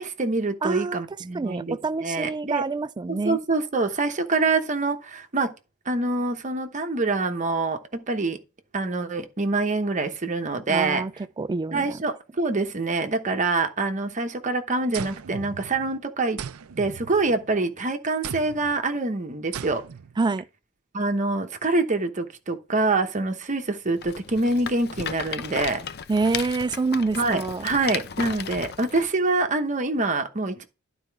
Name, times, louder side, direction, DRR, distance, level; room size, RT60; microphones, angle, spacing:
voice 1, 0.0-1.8 2.0-2.6 3.2-5.5 5.9-8.4 8.7-11.0 11.7-16.4 16.8-19.8 20.9-25.8 27.2-30.6, right 3 dB, 35° right, 1.0 m, -25 dB
voice 2, 0.6-3.4 10.7-11.1 11.4-12.0 20.2-20.5 26.1-27.7, right 3 dB, 20° right, 0.3 m, -27 dB
sound 1, 14.9-16.0 16.4-17.7 18.2-18.8 19.5-20.2, right 7 dB, 90° right, 0.5 m, -38 dB
Rattle, 24.0-29.1, left 7 dB, 50° left, 0.5 m, -35 dB
12.0 x 4.3 x 4.6 m
head